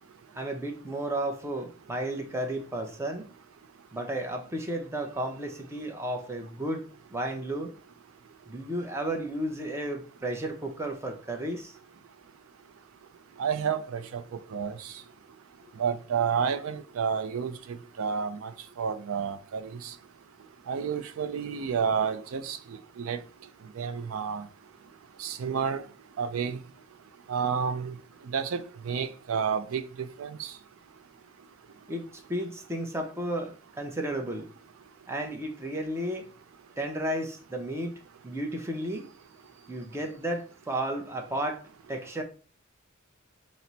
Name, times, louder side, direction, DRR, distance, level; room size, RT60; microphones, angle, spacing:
voice 1, 0.3-3.3 3.9-6.8 7.1-7.7 8.5-11.8 31.9-34.5 35.1-36.3 36.8-39.1 39.7-41.6 41.9-42.2, right 1 dB, 15° right, 0.6 m, -33 dB
voice 2, 13.4-14.2 14.5-14.9 15.8-18.5 18.8-19.7 20.7-22.6 23.0-23.2 23.8-24.5 25.2-25.8 26.2-26.6 27.3-27.9 28.3-29.8 30.2-30.5, right 6 dB, 80° right, 0.4 m, -30 dB
5.9 x 2.0 x 3.9 m
head